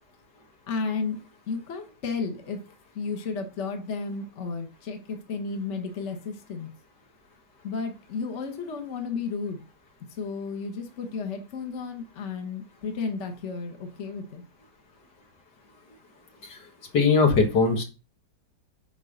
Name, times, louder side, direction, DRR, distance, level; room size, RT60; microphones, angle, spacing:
voice 1, 0.7-1.2 1.5-2.6 2.9-6.7 7.6-9.6 10.1-14.4, left 4 dB, 45° left, 4 dB, 1.5 m, -33 dB
voice 2, 16.9-17.8, left 4 dB, 70° left, 3 dB, 2.2 m, -20 dB
9.9 x 3.9 x 6.5 m, 0.32 s
omnidirectional pair, 1.8 m